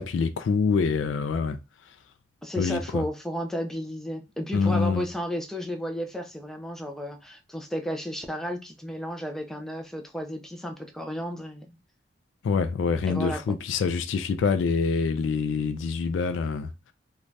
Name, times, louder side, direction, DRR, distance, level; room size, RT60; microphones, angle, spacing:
voice 1, 0.0-1.6 2.6-3.0 4.5-5.0 12.4-16.7, left 5 dB, 85° left, 0.3 m, -25 dB
voice 2, 2.4-11.8 13.1-13.4, equal, ahead, 0.4 m, -33 dB
2.6 x 2.2 x 3.1 m
head